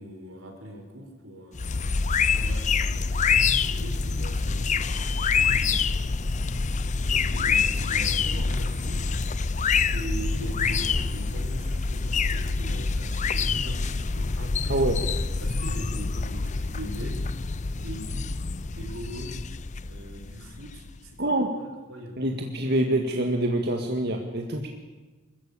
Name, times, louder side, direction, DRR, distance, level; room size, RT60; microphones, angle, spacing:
voice 1, 0.0-2.0 2.3-6.2 7.0-9.1 9.9-14.9 15.4-17.3 17.7-18.4 18.7-19.4 19.8-21.3 21.6-22.2, right 1 dB, 80° right, 3 dB, 4.6 m, -41 dB
sound 1, 1.5-21.0, left 4 dB, 35° left, 0.6 m, -26 dB
voice 2, 14.7-15.0 21.2-21.5 22.2-24.7, right 1 dB, 50° right, 3 dB, 1.8 m, -25 dB
25.0 x 14.5 x 8.6 m, 1.3 s
head